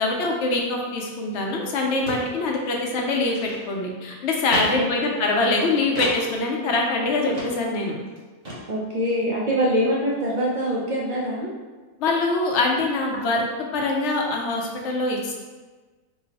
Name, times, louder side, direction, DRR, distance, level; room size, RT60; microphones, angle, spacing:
voice 1, 0.0-8.0 12.0-13.4 13.7-15.3, left 2 dB, 60° left, 0 dB, 0.8 m, -24 dB
sound 1, 1.3-1.4 1.6-1.7 2.1-2.3 2.6-2.8 3.2-3.9 4.5-4.7 6.0-6.2 6.7-6.8 7.3-7.5 7.8-8.2 8.5-8.6, equal, 35° right, 0.8 m, -32 dB
voice 2, 8.7-11.5, equal, 55° right, -5 dB, 0.5 m, -24 dB
3.8 x 2.0 x 4.0 m, 1.3 s
omnidirectional pair, 1.5 m